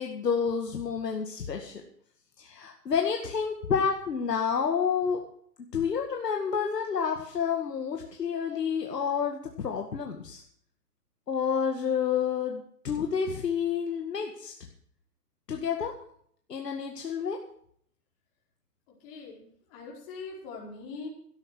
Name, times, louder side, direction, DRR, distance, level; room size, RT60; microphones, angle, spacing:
voice 1, 0.0-1.8 2.4-5.2 5.7-10.4 11.3-14.5 15.5-15.9 16.5-17.4, left 6 dB, 90° left, 3 dB, 2.0 m, -29 dB
voice 2, 19.0-21.1, left 4 dB, 35° left, -3 dB, 4.9 m, -42 dB
13.0 x 11.0 x 6.2 m, 0.63 s
hypercardioid pair, 145°, 48 cm